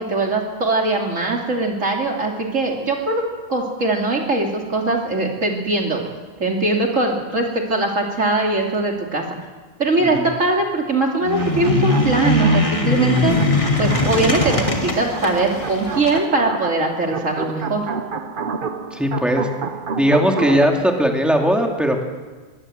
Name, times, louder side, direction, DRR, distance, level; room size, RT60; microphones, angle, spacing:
voice 1, 0.0-3.2 3.5-6.1 6.4-9.2 9.8-13.4 13.8-17.9, right 2 dB, 70° right, 1 dB, 3.3 m, -21 dB
sound 1, 11.2-16.2, left 2 dB, 25° left, 2.1 m, -20 dB
sound 2, 11.3-20.7, right 5 dB, 45° right, 1.0 m, -30 dB
voice 2, 18.9-19.5 20.0-22.0, equal, ahead, 1 dB, 2.7 m, -18 dB
22.5 x 17.5 x 7.9 m, 1.3 s
omnidirectional pair, 1.4 m